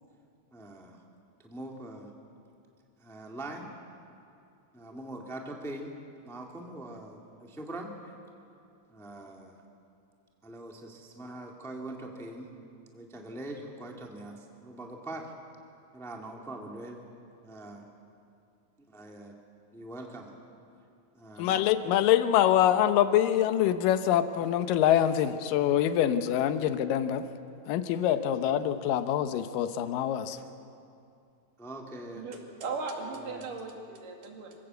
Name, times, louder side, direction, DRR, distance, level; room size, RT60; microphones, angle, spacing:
voice 1, 0.5-1.0 1.4-2.1 3.0-3.7 4.7-5.9 6.2-8.1 8.9-9.6 10.4-12.5 12.9-15.3 15.9-17.0 17.4-17.8 18.9-19.4 19.7-20.3 21.1-21.6 30.4-30.5 31.6-32.2 33.2-33.5, right 1 dB, ahead, 1 dB, 0.9 m, -42 dB
voice 2, 21.4-27.2 27.7-30.4, left 11 dB, 75° left, 10 dB, 2.5 m, -25 dB
voice 3, 32.2-34.6, right 4 dB, 70° right, 2 dB, 3.8 m, -37 dB
26.0 x 16.5 x 8.0 m, 2.6 s
omnidirectional pair, 4.1 m